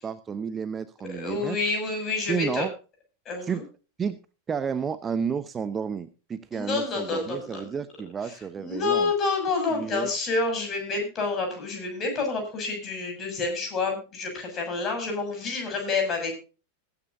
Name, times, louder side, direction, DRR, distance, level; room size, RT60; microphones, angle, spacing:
voice 1, 0.0-1.6 2.3-2.7 3.4-3.6 4.0-4.2 4.5-9.1 9.7-10.1, right 6 dB, 20° right, 13 dB, 0.8 m, -31 dB
voice 2, 1.0-2.7 3.3-3.6 6.5-7.7 8.2-16.3, left 3 dB, 30° left, 3 dB, 6.9 m, -28 dB
21.0 x 9.7 x 2.7 m, 0.34 s
figure-of-eight pair, 90°, 0 cm